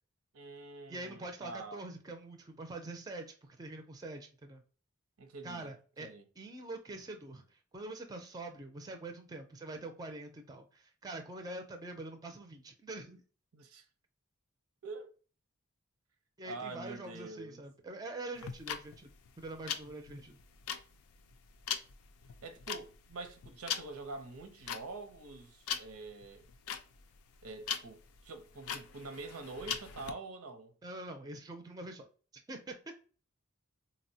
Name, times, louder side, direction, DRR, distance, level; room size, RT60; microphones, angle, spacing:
voice 1, 0.3-1.8 5.2-5.7 6.0-6.2 13.5-13.9 14.8-15.1 16.4-17.6 22.4-26.5 27.4-30.7, right 3 dB, 85° right, 0.6 m, -46 dB
voice 2, 0.9-4.6 5.4-6.1 6.4-13.2 16.4-19.1 19.4-20.4 30.8-32.1 32.5-32.7, right 2 dB, 20° right, 0.4 m, -45 dB
sound 1, 18.4-30.1, left 8 dB, 90° left, 0.4 m, -41 dB
3.9 x 2.0 x 2.6 m
head